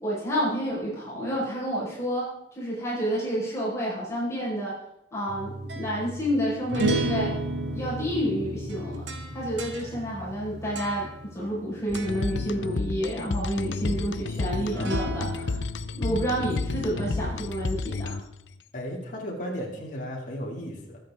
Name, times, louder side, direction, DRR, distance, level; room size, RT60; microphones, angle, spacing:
voice 1, 0.0-4.8 5.1-7.3 7.7-9.0 9.3-15.6 15.9-18.2, equal, 15° left, -8 dB, 5.2 m, -29 dB
sound 1, 5.3-11.6 11.9-12.3 14.7-15.7, right 2 dB, 75° right, 1.8 m, -33 dB
sound 2, 11.9-18.5, left 3 dB, 85° left, 0.7 m, -31 dB
voice 2, 18.7-21.0, equal, 45° left, -2 dB, 2.9 m, -35 dB
23.5 x 8.1 x 3.8 m, 0.83 s
head